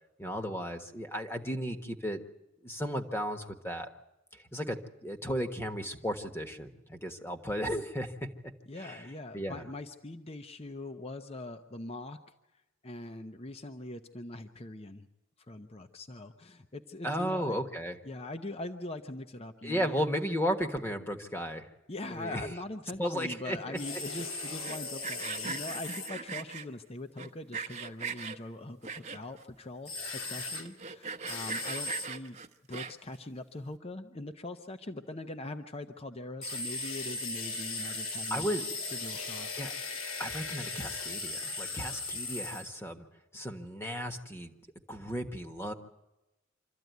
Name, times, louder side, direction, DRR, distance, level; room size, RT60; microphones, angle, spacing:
voice 1, 0.2-2.2 2.6-3.9 4.3-8.3 8.8-9.0 9.3-9.7 17.0-18.0 19.6-21.7 22.1-22.5 23.0-23.8 38.3-38.7 39.5-39.7 40.2-43.1 43.3-44.5 44.9-45.7, equal, 10° left, 6 dB, 1.3 m, -34 dB
voice 2, 8.7-12.2 12.8-15.1 15.5-17.6 18.0-20.0 21.9-32.4 32.7-38.5 38.9-39.5, left 2 dB, 30° left, 8 dB, 0.8 m, -42 dB
sound 1, 23.7-26.1 29.9-30.6 31.3-32.1 36.4-42.7, left 3 dB, 90° left, 2.4 m, -37 dB
Sawing, 24.5-26.7 27.2-28.4 28.8-29.4 29.9-30.0 30.2-30.3 30.7-33.2, right 5 dB, 35° right, 0.9 m, -39 dB
25.5 x 14.0 x 9.4 m, 0.96 s
head